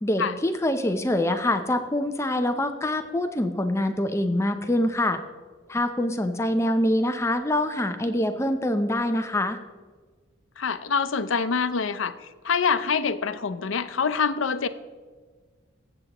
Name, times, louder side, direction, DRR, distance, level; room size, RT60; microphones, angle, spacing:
voice 1, 0.0-5.2 5.7-9.6, left 1 dB, 15° left, 7 dB, 0.5 m, -25 dB
voice 2, 10.6-12.1 12.4-14.7, left 5 dB, 90° left, 12 dB, 0.6 m, -25 dB
20.5 x 7.9 x 3.0 m, 1.5 s
head